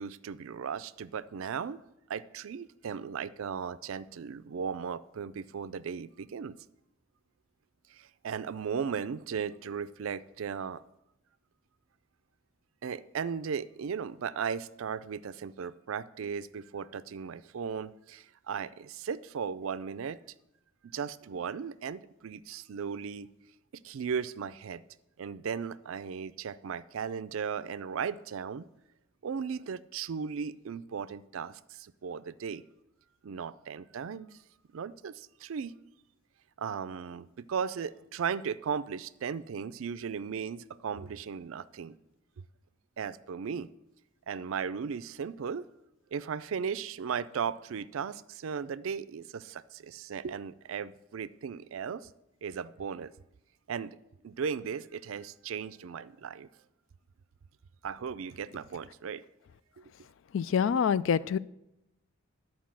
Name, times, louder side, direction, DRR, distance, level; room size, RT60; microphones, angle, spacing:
voice 1, 0.0-1.8 2.1-6.6 7.9-10.8 12.8-20.2 20.8-23.3 23.8-24.8 25.2-28.7 29.2-32.6 33.2-34.4 34.7-35.7 36.6-42.0 43.0-43.7 44.3-45.7 46.1-52.1 52.4-53.1 53.7-54.0 54.2-56.5 57.8-59.2 59.8-59.9, right 6 dB, 70° right, 16 dB, 0.4 m, -36 dB
voice 2, 60.3-61.4, left 7 dB, 65° left, 18 dB, 0.3 m, -26 dB
10.5 x 4.7 x 7.4 m, 0.88 s
head